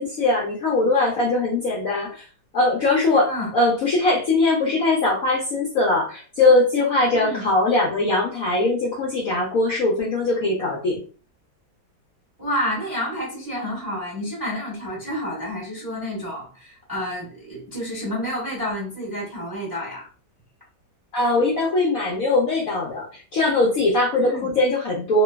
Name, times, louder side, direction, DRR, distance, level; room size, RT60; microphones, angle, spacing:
voice 1, 0.0-2.2 2.5-11.0 21.1-25.2, left 2 dB, 65° left, -3 dB, 0.9 m, -21 dB
voice 2, 7.1-7.4 12.4-20.1 24.2-24.5, equal, 15° right, -5 dB, 0.8 m, -29 dB
3.0 x 2.2 x 2.2 m, 0.38 s
omnidirectional pair, 2.0 m